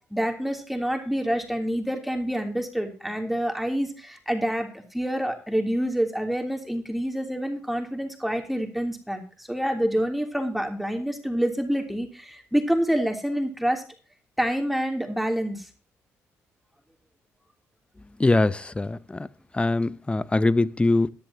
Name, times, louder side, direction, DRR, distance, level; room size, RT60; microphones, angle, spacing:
voice 1, 0.1-13.8 14.4-15.7, equal, ahead, 3.1 m, -27 dB
voice 2, 18.2-19.3 19.6-21.1, left 2 dB, 20° left, 0.7 m, -22 dB
16.5 x 10.5 x 2.9 m
supercardioid pair, 60°, 6 cm